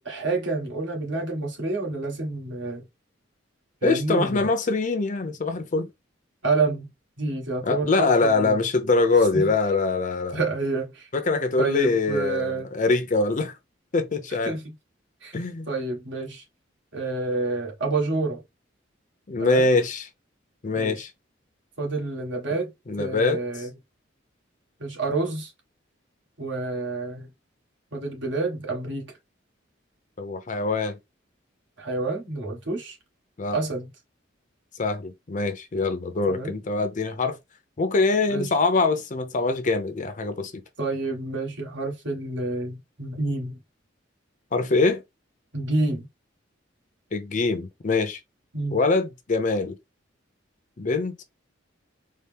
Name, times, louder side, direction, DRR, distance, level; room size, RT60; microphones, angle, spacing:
voice 1, 0.0-2.9 3.8-4.5 6.4-6.9 7.2-8.6 9.2-9.5 10.3-11.1 11.6-12.7 14.4-14.7 15.2-15.4 15.7-16.4 16.9-18.4 19.4-19.7 20.7-21.0 21.8-22.7 23.0-23.7 24.8-25.5 26.4-27.3 27.9-29.2 31.8-33.0 33.5-33.9 36.3-36.6 38.3-38.5 40.8-43.6 45.5-46.1 48.5-48.8, right 3 dB, 70° right, 1.5 m, -28 dB
voice 2, 3.8-5.9 7.6-10.4 11.1-13.5 13.9-14.6 15.3-15.7 19.3-20.1 20.6-21.1 22.9-23.4 30.2-31.0 33.4-33.6 34.8-37.4 37.8-40.6 44.5-45.0 47.1-48.2 48.7-49.8 50.8-51.2, left 3 dB, 40° left, 0.6 m, -23 dB
4.2 x 2.0 x 3.4 m
head